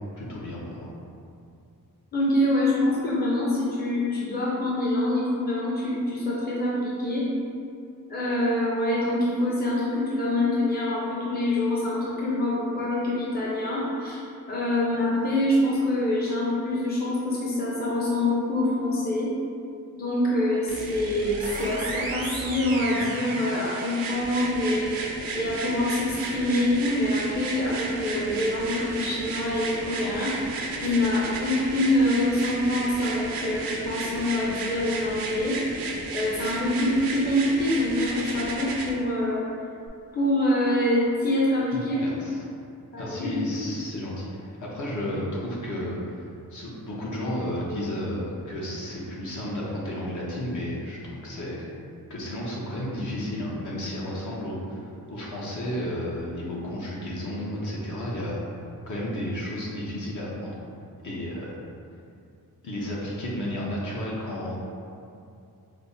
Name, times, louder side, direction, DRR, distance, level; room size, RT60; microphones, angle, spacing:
voice 1, 0.2-0.9 42.0-42.4 43.0-46.2 46.5-51.7 52.1-54.8 55.1-58.4 58.9-60.5 61.0-61.6 62.6-64.6, left 1 dB, 60° left, -5 dB, 0.9 m, -32 dB
voice 2, 2.1-7.3 8.1-14.2 14.5-19.3 20.0-24.9 25.4-30.3 30.8-35.6 36.1-39.5 40.1-42.0 42.9-43.4 56.4-56.5, left 1 dB, 25° left, -6 dB, 0.6 m, -25 dB
sound 1, 20.7-38.9 39.9-40.0, right 3 dB, 85° right, 0.5 m, -33 dB
sound 2, 21.3-23.5 29.0-29.1 30.9-31.0, right 2 dB, 25° right, 0.4 m, -39 dB
5.3 x 2.1 x 2.6 m, 2.6 s
cardioid pair, 100°, 35 cm